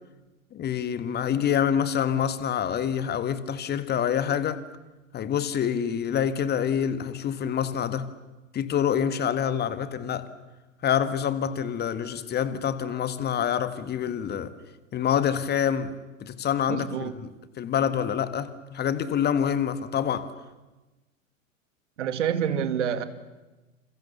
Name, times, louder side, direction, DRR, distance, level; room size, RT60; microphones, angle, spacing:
voice 1, 0.5-4.6 5.1-8.1 8.5-10.3 10.8-14.6 14.9-17.3 17.6-20.3, left 8 dB, 25° left, 1.7 m, -26 dB
voice 2, 16.7-17.1 22.0-23.0, right 8 dB, 60° right, 2.2 m, -27 dB
29.0 x 28.5 x 7.1 m
figure-of-eight pair, 90°, 40 cm